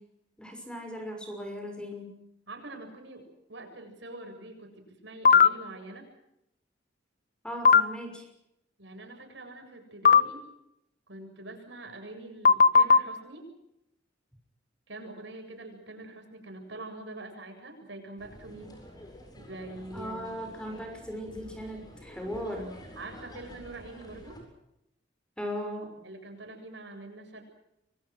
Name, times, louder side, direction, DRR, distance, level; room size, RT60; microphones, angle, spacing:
voice 1, 0.4-2.2 7.4-8.3 19.9-22.9 25.4-26.0, equal, 5° left, 4 dB, 6.2 m, -38 dB
voice 2, 2.5-6.1 8.8-10.5 11.1-13.5 14.9-18.7 19.4-20.5 23.0-24.4 26.0-27.4, right 2 dB, 70° right, 4 dB, 7.7 m, -44 dB
sound 1, 5.3-5.5 7.7-7.8 10.1-10.2 12.5-13.0, left 5 dB, 45° left, 0.9 m, -16 dB
sound 2, 18.2-24.4, equal, 20° left, 7.7 m, -49 dB
28.5 x 24.0 x 6.3 m, 0.81 s
head